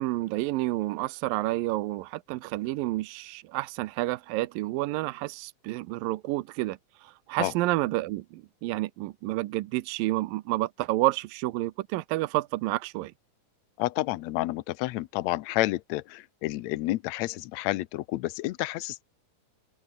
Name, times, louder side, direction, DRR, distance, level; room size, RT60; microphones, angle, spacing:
voice 1, 0.0-13.1, right 18 dB, 85° right, 2.5 m, -30 dB
voice 2, 13.8-19.0, left 17 dB, 85° left, 1.5 m, -30 dB
omnidirectional pair, 4.0 m